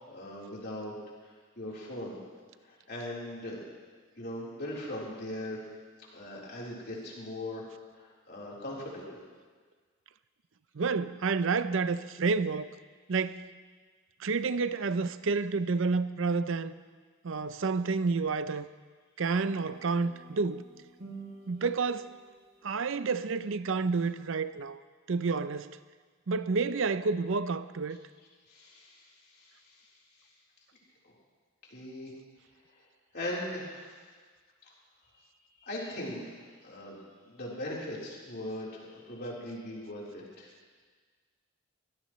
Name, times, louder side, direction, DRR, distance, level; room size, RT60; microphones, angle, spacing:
voice 1, 0.0-0.9 1.6-2.2 2.7-3.6 4.2-5.6 6.1-7.7 7.9-9.2 28.5-29.0 29.3-29.5 31.7-32.1 33.1-33.9 35.6-40.5, left 1 dB, 45° left, -5 dB, 4.0 m, -39 dB
voice 2, 10.7-12.7 13.1-13.4 14.2-16.7 17.2-18.7 19.2-20.6 21.5-22.1 22.6-24.8 25.1-25.8 26.3-28.0, right 4 dB, 60° right, 13 dB, 0.5 m, -29 dB
sound 1, 19.4-22.7, right 3 dB, 40° right, 2.7 m, -50 dB
22.5 x 16.5 x 3.2 m, 1.5 s
head